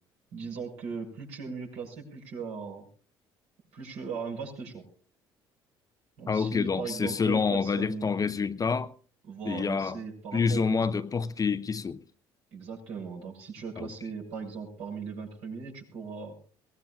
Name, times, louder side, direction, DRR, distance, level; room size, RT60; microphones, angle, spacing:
voice 1, 0.3-2.9 3.7-4.8 6.2-8.1 9.3-11.0 12.5-16.4, right 5 dB, 65° right, 6.4 m, -38 dB
voice 2, 6.3-8.9 9.4-10.0 10.3-12.0 13.8-13.9, left 5 dB, 30° left, 0.8 m, -27 dB
23.0 x 18.0 x 2.4 m
hypercardioid pair, 60°, 12 cm